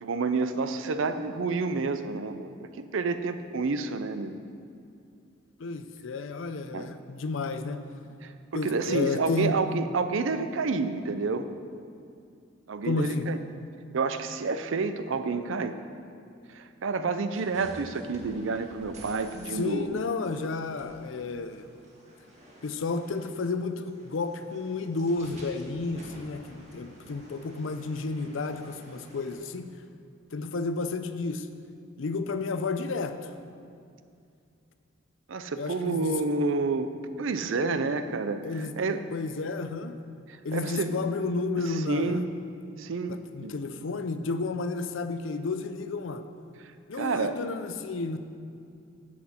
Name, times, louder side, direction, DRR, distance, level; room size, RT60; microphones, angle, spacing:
voice 1, 0.0-2.5 2.9-4.4 6.7-6.9 8.2-8.3 8.6-11.5 12.7-13.4 13.9-15.8 16.5-20.0 35.3-39.0 40.3-41.0 41.7-42.3 42.8-43.5 46.9-47.4, right 4 dB, 75° right, 10 dB, 0.5 m, -29 dB
voice 2, 5.6-7.8 8.5-9.6 12.8-13.3 19.5-21.7 22.6-29.7 30.3-31.5 32.0-33.3 35.6-36.1 38.4-38.7 39.1-40.0 40.4-42.2 43.1-46.2 46.9-48.2, left 3 dB, 75° left, 9 dB, 0.5 m, -31 dB
sound 1, 17.3-29.4, equal, 35° right, 1.5 m, -51 dB
10.0 x 7.5 x 4.3 m, 2.4 s
head